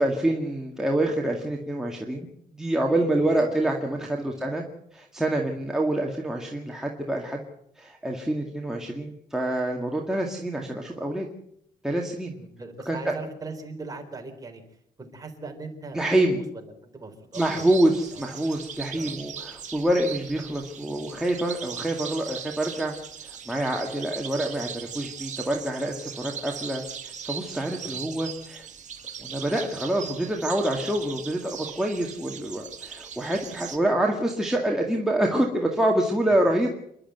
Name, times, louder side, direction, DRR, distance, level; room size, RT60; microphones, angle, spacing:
voice 1, 0.0-2.3 2.5-4.6 4.9-7.4 7.8-11.3 11.8-12.3 12.9-13.1 15.9-16.4 17.4-22.9 23.2-28.7 29.2-36.7, right 1 dB, 5° right, 0 dB, 2.0 m, -26 dB
voice 2, 3.2-3.6 4.2-4.5 12.3-16.0 16.3-17.7 18.1-18.3 18.9-19.2 27.8-28.1, right 3 dB, 20° right, 3 dB, 3.9 m, -40 dB
sound 1, 17.3-33.8, right 7 dB, 50° right, 2.2 m, -39 dB
28.0 x 11.5 x 8.0 m, 0.75 s
cardioid pair, 135°, 16 cm